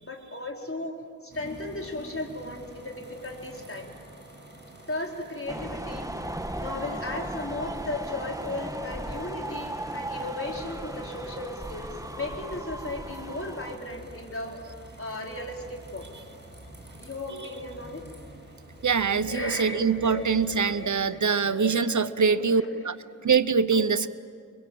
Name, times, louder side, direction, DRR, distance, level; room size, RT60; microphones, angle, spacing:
voice 1, 0.0-1.0 1.2-3.9 4.9-6.1 6.6-16.1 17.0-18.0 19.1-23.2 23.7-23.8, left 2 dB, 40° left, 0 dB, 4.5 m, -36 dB
sound 1, 1.3-20.9, right 1 dB, 35° right, 7.5 m, -48 dB
sound 2, 5.5-13.8, right 1 dB, 10° right, 1.2 m, -36 dB
voice 2, 18.8-23.0 23.2-24.1, right 5 dB, 65° right, 14 dB, 0.8 m, -24 dB
29.0 x 23.0 x 7.7 m, 2.1 s
wide cardioid pair, 45°, 32 cm